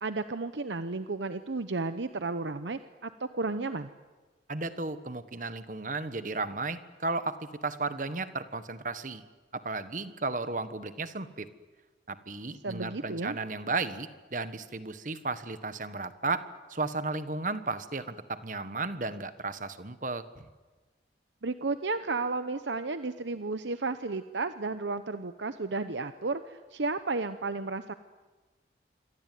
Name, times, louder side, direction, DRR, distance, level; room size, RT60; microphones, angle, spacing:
voice 1, 0.0-3.9 12.6-13.4 21.4-27.9, right 3 dB, 80° right, 10 dB, 0.9 m, -33 dB
voice 2, 4.5-9.2 9.5-11.5 12.1-20.5, right 3 dB, 45° right, 12 dB, 1.4 m, -34 dB
26.5 x 23.5 x 9.3 m, 1.3 s
head